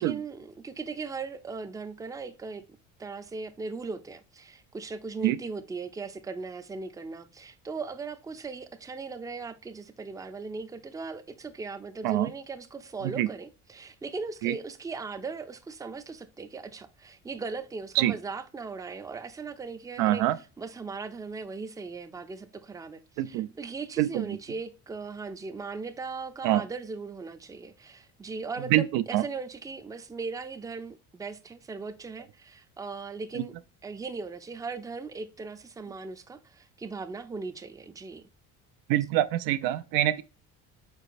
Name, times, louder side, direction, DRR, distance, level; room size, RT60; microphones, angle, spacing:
voice 1, 0.0-2.6 3.0-33.5 33.8-38.2, right 4 dB, 10° right, 0.4 m, -38 dB
voice 2, 20.0-20.4 23.2-23.5 24.0-24.2 26.4-26.6 28.7-29.2 38.9-40.2, right 14 dB, 80° right, 0.5 m, -25 dB
4.8 x 3.9 x 2.5 m
supercardioid pair, 95°, 33 cm